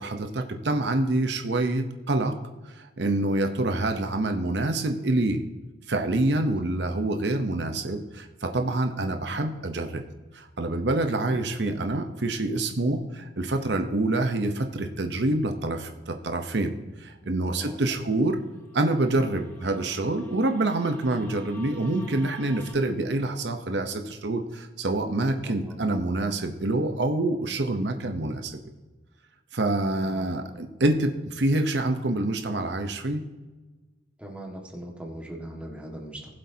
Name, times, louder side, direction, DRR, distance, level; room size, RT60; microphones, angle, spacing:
voice 1, 0.0-2.3 2.6-5.4 5.9-10.0 10.3-18.4 18.7-28.7 29.5-33.2, right 2 dB, 65° right, 5 dB, 0.8 m, -26 dB
voice 2, 17.5-18.1 25.4-25.9 30.0-30.6 34.2-36.3, right 1 dB, 5° right, -1 dB, 1.7 m, -41 dB
sound 1, 18.3-22.7, left 2 dB, 10° left, 2.3 m, -50 dB
19.5 x 7.7 x 2.8 m, 1.2 s
head